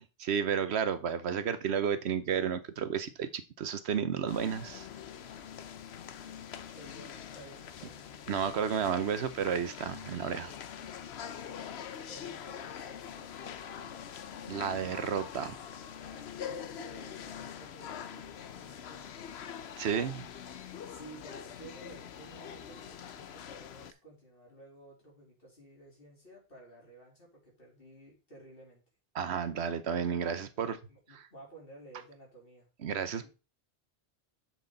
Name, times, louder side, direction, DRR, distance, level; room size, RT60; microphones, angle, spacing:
voice 1, 0.2-4.9 8.3-10.5 14.5-15.5 19.8-20.3 29.1-30.8 32.8-33.3, right 7 dB, 90° right, 1.1 m, -32 dB
sound 1, 4.3-23.9, left 8 dB, 85° left, 1.0 m, -44 dB
voice 2, 5.8-8.2 11.6-14.1 14.9-15.5 16.0-19.4 19.9-20.2 20.8-28.8 30.6-32.7 33.2-33.3, right 2 dB, 60° left, 3.7 m, -54 dB
7.4 x 6.3 x 3.9 m
omnidirectional pair, 1.1 m